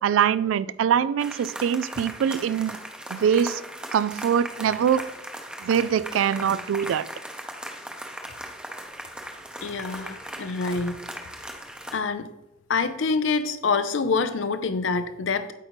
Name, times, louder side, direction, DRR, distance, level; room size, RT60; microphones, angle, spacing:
voice 1, 0.0-2.8 3.1-3.6 3.9-5.0 5.6-7.1, right 8 dB, 80° right, 0.3 m, -23 dB
sound 1, 1.2-12.0, right 1 dB, 5° right, 0.7 m, -38 dB
voice 2, 9.6-11.0 11.9-12.3 12.7-15.5, left 4 dB, 70° left, 0.6 m, -26 dB
8.2 x 5.1 x 3.1 m
head